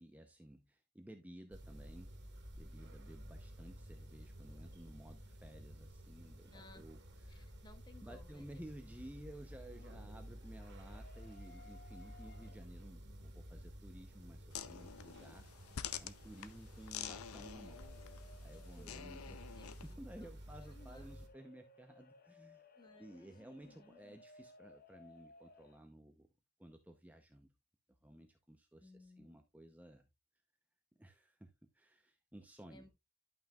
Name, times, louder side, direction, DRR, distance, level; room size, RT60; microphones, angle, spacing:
voice 1, 0.0-2.1 2.6-7.0 7.3-7.5 8.0-15.5 16.0-17.8 18.4-22.6 23.0-26.3 26.6-27.5 28.0-30.1 31.0-32.8, right 1 dB, 5° right, 0.7 m, -55 dB
sound 1, 1.5-21.3, equal, 55° right, 2.1 m, -53 dB
voice 2, 6.5-6.8 7.3-8.7 9.6-10.0 18.5-20.3 20.6-21.1 22.8-24.2 28.8-29.4 32.7-32.9, left 2 dB, 20° left, 1.1 m, -61 dB
sound 2, 10.3-13.0 13.4-13.5 14.1-25.8, left 3 dB, 40° left, 0.8 m, -63 dB
sound 3, 14.5-19.9, left 9 dB, 70° left, 0.6 m, -48 dB
12.0 x 5.6 x 2.3 m
head